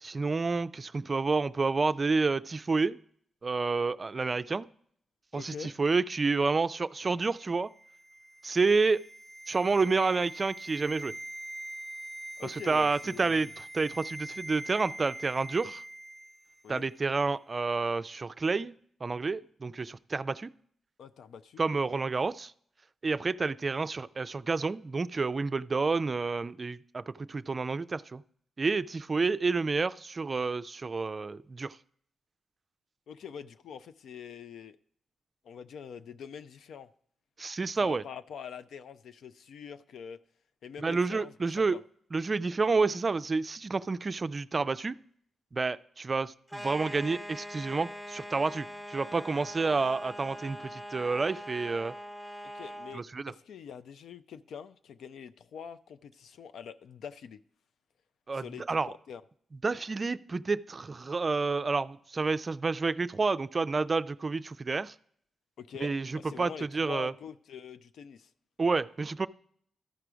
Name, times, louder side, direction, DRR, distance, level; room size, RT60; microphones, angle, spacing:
voice 1, 0.0-3.0 3.4-4.7 5.3-7.7 8.4-9.0 9.5-11.1 12.4-15.8 16.7-18.8 19.0-20.5 21.6-22.5 23.0-28.2 28.6-31.8 37.4-38.0 40.8-41.8 42.1-45.0 45.5-51.9 52.9-53.3 58.3-58.9 59.6-64.9 65.8-67.1 68.6-69.3, right 4 dB, 40° right, 0.4 m, -29 dB
voice 2, 5.3-5.8 12.4-13.5 16.6-16.9 21.0-21.6 21.9-22.0 33.1-34.8 35.4-36.9 37.8-40.2 40.6-41.8 49.3-49.5 52.5-57.4 58.3-58.8 59.1-59.2 65.6-68.3, left 7 dB, 75° left, 0.4 m, -45 dB
sound 1, 7.4-16.6 16.9-17.1, right 1 dB, 15° right, 1.1 m, -44 dB
sound 2, 46.5-53.0, equal, 10° left, 1.0 m, -42 dB
13.5 x 4.9 x 4.6 m
supercardioid pair, 45°, 0 cm